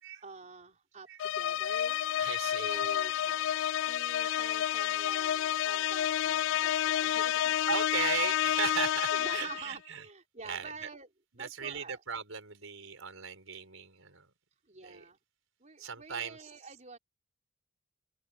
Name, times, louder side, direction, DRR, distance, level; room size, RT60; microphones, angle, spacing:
voice 1, 0.2-2.0 2.6-3.5 3.8-7.6 9.1-11.1 11.3-12.0 14.7-15.2 15.6-17.0, right 3 dB, 35° right, 4.8 m, -47 dB
sound 1, 1.2-9.7, left 11 dB, 65° left, 0.3 m, -30 dB
voice 2, 2.2-2.8 4.2-4.4 6.5-6.7 7.7-10.0 10.4-10.9 11.4-14.3 14.8-15.0 15.8-16.4, right 7 dB, 75° right, 5.3 m, -37 dB
open air
head